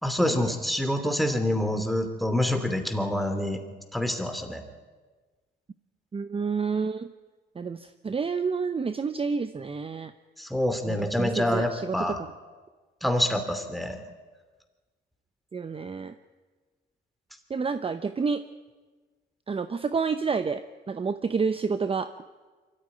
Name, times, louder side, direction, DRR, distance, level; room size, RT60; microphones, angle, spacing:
voice 1, 0.0-3.6 3.9-4.6 10.4-12.2 13.0-14.0, left 1 dB, ahead, 6 dB, 2.8 m, -26 dB
voice 2, 6.1-7.1 7.5-10.1 10.8-12.3 15.5-16.1 17.5-18.4 19.5-22.1, right 5 dB, 30° right, 11 dB, 0.8 m, -29 dB
23.5 x 14.0 x 9.7 m, 1.3 s
cardioid pair, 90°, 20 cm